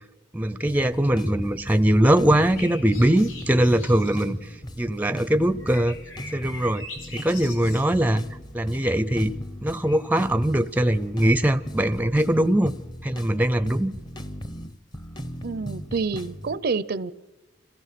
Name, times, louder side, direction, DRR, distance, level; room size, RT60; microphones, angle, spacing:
voice 1, 0.3-4.4 4.8-6.0 6.3-6.9 7.1-8.2 8.5-9.3 9.6-12.7 13.0-13.9, right 1 dB, 10° right, 13 dB, 0.6 m, -21 dB
sound 1, 0.7-16.6, equal, 20° left, 0.8 m, -38 dB
sound 2, 2.4-4.3 5.6-8.1 9.8-10.0, left 3 dB, 80° left, 3.4 m, -42 dB
voice 2, 15.4-17.1, right 4 dB, 55° right, 17 dB, 0.6 m, -28 dB
26.5 x 16.5 x 5.9 m, 1.1 s
head